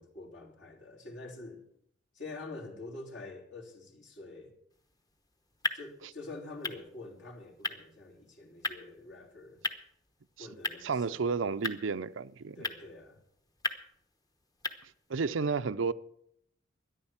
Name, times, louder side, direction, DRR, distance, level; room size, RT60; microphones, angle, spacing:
voice 1, 0.0-1.6 2.1-4.6 5.7-9.6 10.4-11.3 12.5-13.2, left 2 dB, 65° left, 3.2 m, -46 dB
sound 1, 4.7-15.2, left 2 dB, 20° left, 0.9 m, -41 dB
voice 2, 10.8-12.6 14.8-15.9, right 5 dB, 80° right, 0.6 m, -32 dB
13.0 x 10.5 x 7.2 m
head